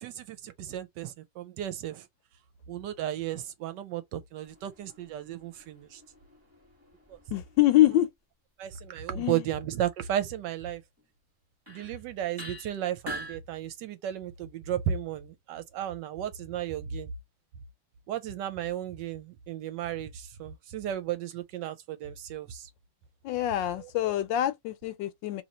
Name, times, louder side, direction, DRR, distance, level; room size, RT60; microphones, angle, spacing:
voice 1, 0.0-2.0 2.7-6.0 7.1-7.2 8.6-10.8 11.7-17.1 18.1-22.7 23.8-23.9, right 11 dB, 75° right, 1.1 m, -34 dB
sound 1, 4.4-7.9 11.0-11.1 11.7-12.0 12.4-13.4, right 1 dB, 10° right, 1.0 m, -45 dB
voice 2, 7.3-8.1 9.1-9.5 23.2-25.4, left 14 dB, 80° left, 1.2 m, -25 dB
2.9 x 2.8 x 4.0 m
omnidirectional pair, 2.1 m